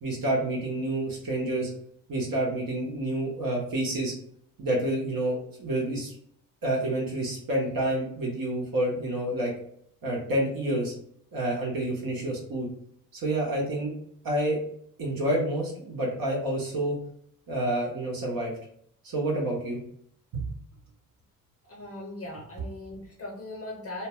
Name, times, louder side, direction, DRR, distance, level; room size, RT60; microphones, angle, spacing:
voice 1, 0.0-1.7 2.1-4.1 4.6-6.1 6.6-9.5 10.0-10.9 11.3-12.7 13.1-13.9 14.2-14.6 15.0-17.0 17.5-18.5 19.0-19.8 20.3-20.4, right 1 dB, 45° right, -2 dB, 1.0 m, -28 dB
voice 2, 21.7-24.1, left 2 dB, 30° left, -1 dB, 0.8 m, -39 dB
2.2 x 2.1 x 3.5 m, 0.67 s
hypercardioid pair, 50°, 46 cm